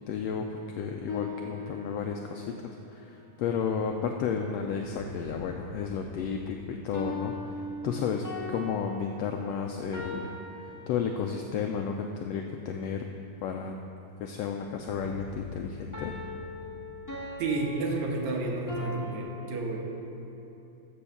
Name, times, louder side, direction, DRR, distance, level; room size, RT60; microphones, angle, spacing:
voice 1, 0.1-7.3 7.8-10.3 10.9-13.0 13.4-13.7 14.2-16.1, left 6 dB, 85° left, 3 dB, 1.4 m, -32 dB
sound 1, 1.1-2.4 6.9-11.5 15.9-19.2, left 2 dB, 15° left, 0.7 m, -40 dB
sound 2, 4.5-9.1 9.4-9.5 14.5-18.4, left 3 dB, 45° left, 2.3 m, -47 dB
voice 2, 17.4-19.8, right 2 dB, 70° right, 0 dB, 2.5 m, -31 dB
13.5 x 5.5 x 7.1 m, 2.9 s
omnidirectional pair, 3.5 m